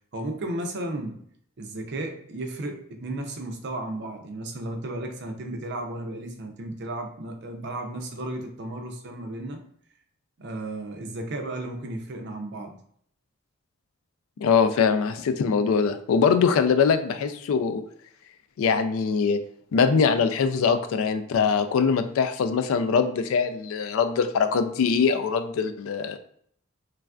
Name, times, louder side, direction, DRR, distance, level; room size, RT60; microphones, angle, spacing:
voice 1, 0.1-1.3 1.6-9.6 10.4-12.8, right 1 dB, 55° right, 4 dB, 0.5 m, -34 dB
voice 2, 14.4-17.8 18.6-19.4 19.7-26.2, left 6 dB, 80° left, 9 dB, 0.3 m, -22 dB
3.2 x 2.4 x 2.3 m, 0.64 s
head